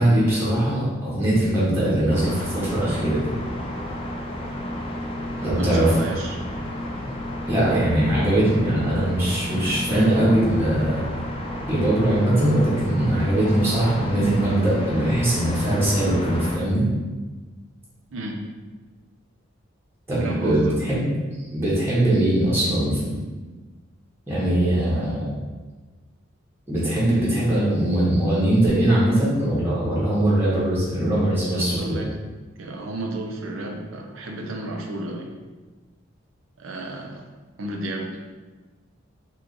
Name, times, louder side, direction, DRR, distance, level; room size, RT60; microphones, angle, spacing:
voice 1, 0.0-3.3 5.4-6.0 7.5-11.0 11.7-16.8 20.1-21.1 21.5-23.2 24.3-25.4 26.7-32.0, right 1 dB, 10° right, -9 dB, 0.8 m, -21 dB
sound 1, 2.1-16.6, left 1 dB, 30° left, 0.4 m, -31 dB
voice 2, 5.4-6.4 18.1-18.4 20.2-20.9 31.5-32.1 32.6-35.3 36.6-37.3 37.6-38.2, right 1 dB, 75° right, 2 dB, 0.5 m, -32 dB
3.0 x 2.3 x 3.8 m, 1.3 s
head